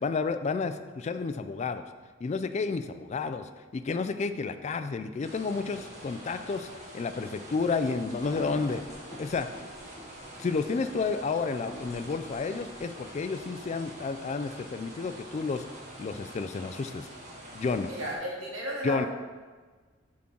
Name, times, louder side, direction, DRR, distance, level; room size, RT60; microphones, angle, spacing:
voice 1, 0.0-1.8 2.2-8.8 9.2-9.5 10.4-15.6 16.0-17.1 17.5-17.9 18.8-19.1, left 4 dB, 35° left, 10 dB, 0.3 m, -31 dB
sound 1, 5.2-18.1, right 1 dB, 35° right, 1.4 m, -46 dB
sound 2, 6.6-14.6, equal, 15° left, 1.4 m, -48 dB
voice 2, 17.9-19.1, equal, 80° right, -3 dB, 2.0 m, -34 dB
7.5 x 3.8 x 5.8 m, 1.4 s
head